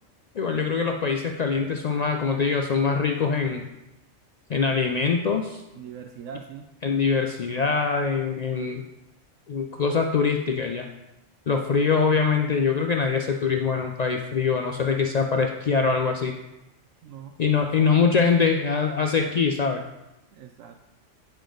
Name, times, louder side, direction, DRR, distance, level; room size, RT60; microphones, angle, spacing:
voice 1, 0.4-3.7 4.5-5.6 6.8-8.9 9.5-10.9 11.5-16.3 17.4-19.8, left 5 dB, 85° left, 3 dB, 0.3 m, -23 dB
voice 2, 5.7-6.7 17.0-17.3 20.3-20.8, right 7 dB, 85° right, 5 dB, 1.0 m, -41 dB
8.9 x 5.1 x 3.8 m, 0.94 s
omnidirectional pair, 1.3 m